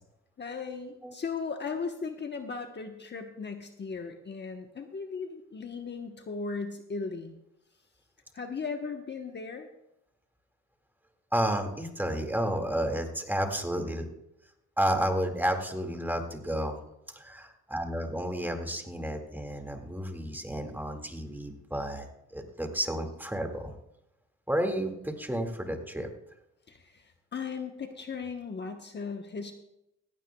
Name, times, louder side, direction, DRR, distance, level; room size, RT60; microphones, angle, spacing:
voice 1, 0.4-7.4 8.3-9.7 26.7-29.5, left 5 dB, 35° left, 5 dB, 1.1 m, -37 dB
voice 2, 11.3-14.1 14.8-16.8 17.1-23.7 24.5-26.1, right 1 dB, 5° right, 4 dB, 2.1 m, -31 dB
17.0 x 15.5 x 2.3 m, 0.85 s
cardioid pair, 90°, 30 cm